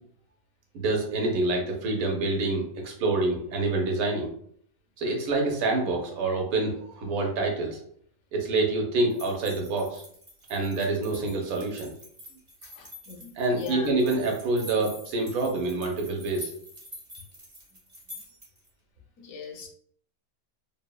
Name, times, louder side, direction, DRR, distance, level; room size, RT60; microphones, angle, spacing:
voice 1, 0.7-4.3 5.0-7.8 8.3-10.0 10.5-11.9 13.4-16.5, right 2 dB, 75° right, 1 dB, 1.1 m, -27 dB
sound 1, 9.1-18.7, left 1 dB, 25° right, 0.8 m, -46 dB
voice 2, 12.7-13.9 19.2-19.7, left 6 dB, 75° left, 1 dB, 0.9 m, -40 dB
3.1 x 2.0 x 2.2 m, 0.64 s
omnidirectional pair, 1.5 m